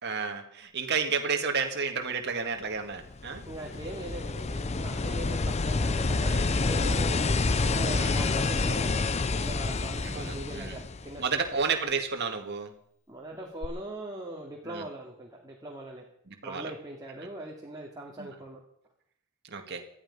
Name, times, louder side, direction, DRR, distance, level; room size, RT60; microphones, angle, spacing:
voice 1, 0.0-3.4 6.2-6.5 7.9-8.2 10.0-10.8 11.2-12.7 14.7-14.8 16.4-16.7 18.2-18.3 19.5-19.8, right 5 dB, 55° right, 4 dB, 1.9 m, -31 dB
sound 1, 3.0-11.5 13.6-13.7, left 3 dB, 30° left, 0.6 m, -28 dB
voice 2, 3.5-7.3 7.6-11.4 13.1-16.0 16.4-18.6, right 1 dB, 20° right, -2 dB, 2.5 m, -41 dB
19.0 x 13.0 x 5.5 m, 0.68 s
head